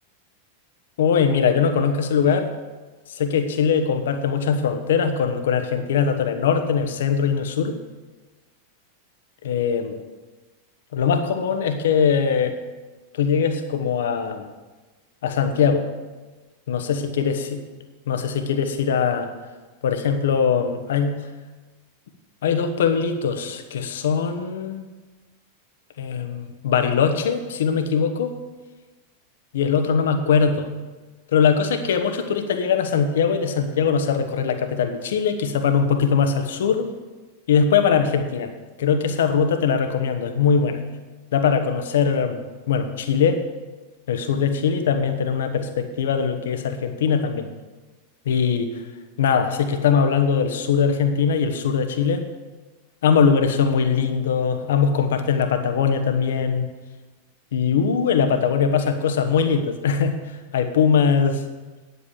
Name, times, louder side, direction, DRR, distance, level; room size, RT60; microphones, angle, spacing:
voice 1, 1.0-2.6 3.1-7.8 9.4-10.0 10.9-12.6 13.1-14.5 15.2-15.9 16.7-17.6 18.1-19.3 19.8-21.2 22.4-24.8 26.0-28.4 29.5-30.7 31.3-36.9 37.5-38.5 38.8-40.8 41.3-42.4 42.7-43.4 44.1-47.5 48.2-48.8 49.2-52.3 53.0-56.7 57.5-60.1 60.5-61.4, left 6 dB, 60° left, 8 dB, 1.2 m, -21 dB
9.7 x 8.2 x 8.0 m, 1.3 s
figure-of-eight pair, 90°, 0 cm